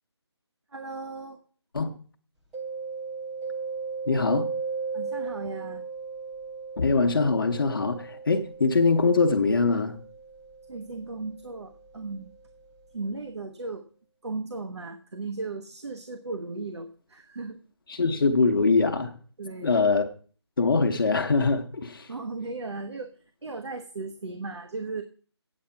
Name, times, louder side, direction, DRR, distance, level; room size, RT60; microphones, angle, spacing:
voice 1, 0.7-1.4 4.9-5.8 10.7-12.3 12.9-13.8 14.2-17.6 19.4-19.7 22.1-25.0, right 3 dB, 70° right, 1.2 m, -36 dB
Mallet percussion, 2.5-12.1, right 5 dB, 5° right, 0.7 m, -37 dB
voice 2, 4.1-4.5 6.8-10.0 17.9-19.1 19.6-20.1 20.6-22.1, left 4 dB, 50° left, 1.0 m, -23 dB
8.7 x 8.3 x 5.7 m
figure-of-eight pair, 165°, 15 cm